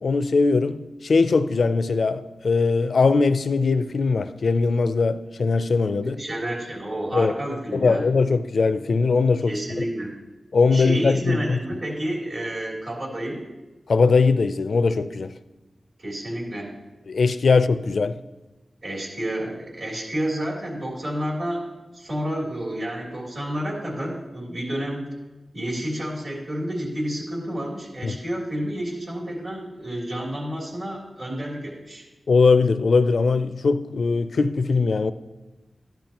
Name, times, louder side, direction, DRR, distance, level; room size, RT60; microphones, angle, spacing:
voice 1, 0.0-6.2 7.1-7.3 7.7-9.6 10.5-11.6 13.9-15.3 17.1-18.2 28.0-28.2 32.3-35.1, left 4 dB, 75° left, 0.4 m, -20 dB
voice 2, 6.0-8.0 9.5-10.1 10.7-13.5 16.0-16.7 18.8-25.1 25.5-32.0, right 1 dB, 60° right, 3.2 m, -30 dB
13.5 x 10.5 x 3.0 m
wide cardioid pair, 60°, 0 cm